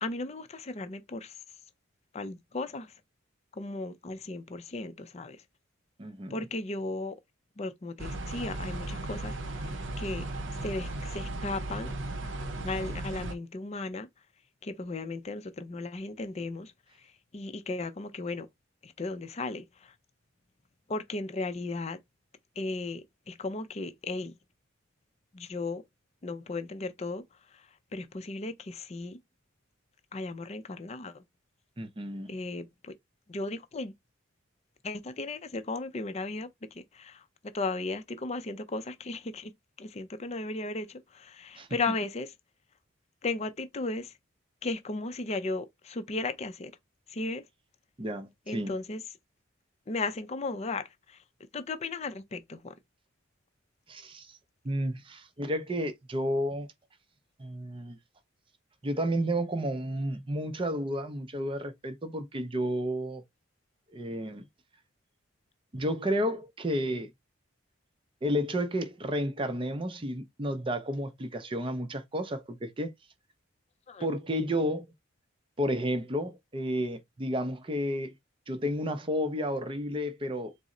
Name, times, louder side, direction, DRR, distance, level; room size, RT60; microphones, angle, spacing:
voice 1, 0.0-1.3 2.1-2.9 3.6-5.4 6.3-7.2 7.6-9.4 10.0-10.2 10.6-11.9 12.6-14.1 14.6-16.7 17.3-18.5 18.8-19.6 20.9-22.0 22.6-24.3 25.3-25.8 26.2-27.2 27.9-29.2 30.1-31.1 32.3-32.9 33.3-33.9 34.8-36.5 36.7-37.2 37.5-39.5 39.8-42.3 43.2-44.1 44.6-46.7 47.1-47.4 48.5-49.0 49.9-50.9 51.5-52.7 73.9-74.1, left 3 dB, 30° left, 0.4 m, -35 dB
voice 2, 6.0-6.5 31.8-32.3 41.6-41.9 48.0-48.8 53.9-54.4 54.6-56.7 57.4-58.0 58.8-63.2 63.9-64.5 65.7-67.1 68.2-72.9 74.0-74.9 75.6-78.1 78.5-80.5, equal, 25° right, 0.5 m, -31 dB
sound 1, 8.0-13.4, right 2 dB, 65° right, 0.6 m, -36 dB
4.0 x 2.0 x 3.7 m
head